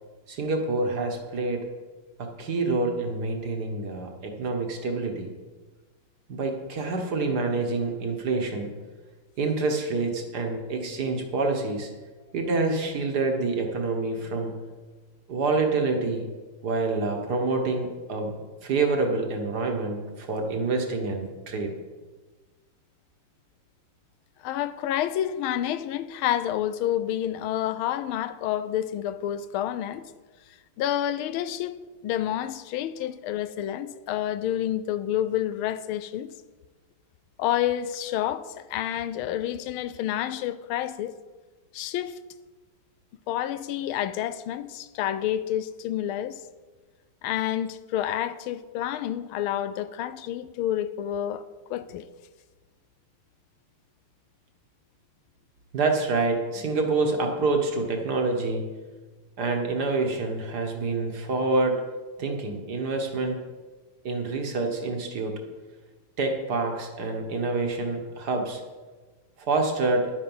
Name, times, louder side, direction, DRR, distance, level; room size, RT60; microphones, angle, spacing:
voice 1, 0.3-1.7 2.2-5.3 6.3-8.7 9.4-11.9 12.3-14.6 15.3-16.3 16.6-18.4 18.6-21.7 55.7-58.6 59.4-61.8 62.2-63.4 64.0-65.4 66.2-68.6 69.4-70.1, right 3 dB, 55° right, 1.7 m, -27 dB
voice 2, 24.4-30.1 30.8-36.3 37.4-41.1 41.7-42.2 43.3-46.4 47.2-51.4 51.7-52.0, left 11 dB, 90° left, 1.5 m, -29 dB
11.0 x 9.0 x 5.5 m
omnidirectional pair, 2.2 m